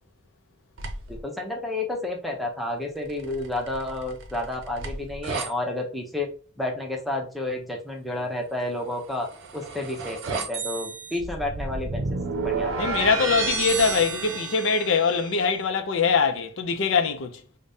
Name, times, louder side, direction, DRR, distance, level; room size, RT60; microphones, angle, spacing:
sound 1, 0.8-1.2 3.1-5.5 9.0-15.4, right 4 dB, 65° right, 0.6 m, -31 dB
voice 1, 1.1-6.3 6.6-9.3 9.5-12.9 13.2-13.5, left 2 dB, ahead, 0.6 m, -31 dB
voice 2, 12.8-17.4, left 5 dB, 65° left, 0.5 m, -23 dB
5.0 x 2.1 x 2.7 m
head